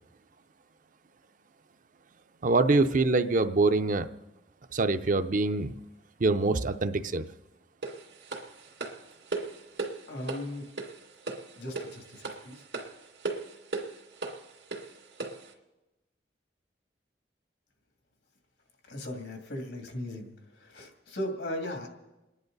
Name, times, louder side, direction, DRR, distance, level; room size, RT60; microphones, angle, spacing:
voice 1, 2.4-4.1 4.7-5.7 6.2-7.3, right 3 dB, 50° right, 9 dB, 0.6 m, -24 dB
sound 1, 7.8-15.5, right 3 dB, 80° right, 2.3 m, -38 dB
voice 2, 10.1-10.7 11.6-12.6 18.9-21.9, left 1 dB, 80° left, 3 dB, 2.4 m, -37 dB
29.5 x 10.5 x 4.0 m, 1.0 s
head